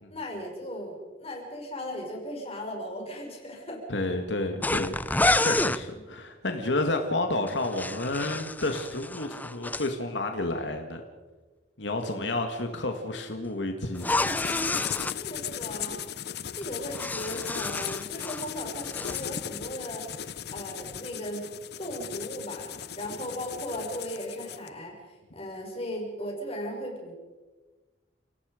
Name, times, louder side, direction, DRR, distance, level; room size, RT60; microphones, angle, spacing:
voice 1, 0.1-3.8 5.9-6.0 11.9-12.4 15.2-21.5 21.8-27.1, equal, 35° left, 0 dB, 5.8 m, -37 dB
voice 2, 3.9-11.0 11.8-14.2, left 2 dB, 85° left, 5 dB, 1.9 m, -30 dB
sound 1, 4.6-5.8 7.5-9.9 13.9-15.2 16.6-18.5 18.8-19.2, left 2 dB, 10° left, 0.6 m, -29 dB
sound 2, 14.0-24.7, left 9 dB, 65° left, 0.8 m, -37 dB
29.5 x 18.5 x 5.1 m, 1.3 s
head